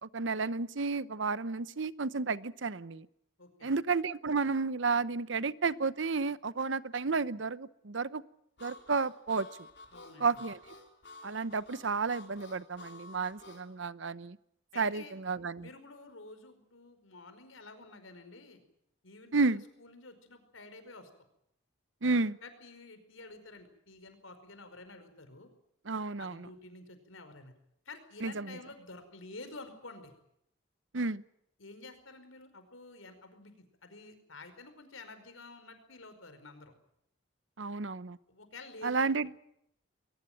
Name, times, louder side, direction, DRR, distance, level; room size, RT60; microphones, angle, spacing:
voice 1, 0.0-3.1 3.6-8.2 8.6-9.5 10.2-10.6 11.2-14.4 14.8-15.7 19.3-19.6 22.0-22.4 25.9-26.5 28.2-28.6 30.9-31.2 37.6-38.2 38.8-39.3, right 4 dB, 70° right, 17 dB, 0.8 m, -32 dB
voice 2, 3.4-3.7 9.9-10.4 14.7-15.2 15.6-18.6 19.0-21.1 22.4-25.5 26.2-27.5 27.8-30.1 31.6-36.7 38.3-39.1, left 3 dB, 85° left, 9 dB, 5.0 m, -50 dB
Harmonica, 8.6-13.7, left 3 dB, 55° left, 4.3 m, -51 dB
22.0 x 19.5 x 9.1 m, 0.77 s
head